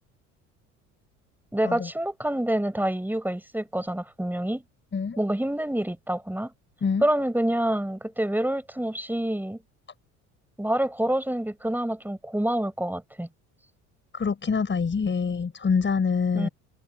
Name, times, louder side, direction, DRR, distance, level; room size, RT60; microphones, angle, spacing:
voice 1, 1.5-4.6 5.2-6.5 7.0-9.6 10.6-13.3 16.3-16.5, right 1 dB, 5° right, 5.1 m, -27 dB
voice 2, 14.1-16.5, left 5 dB, 30° left, 6.2 m, -25 dB
hypercardioid pair, 70°, 36 cm